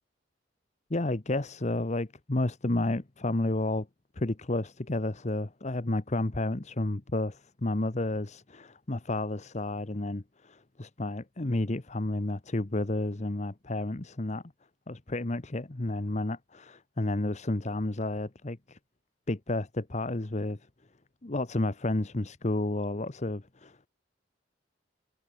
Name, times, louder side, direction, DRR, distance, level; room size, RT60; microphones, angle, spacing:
voice 1, 0.9-3.9 4.2-14.4 14.9-18.8 19.3-20.6 21.2-23.7, left 2 dB, 40° left, 1.1 m, -31 dB
head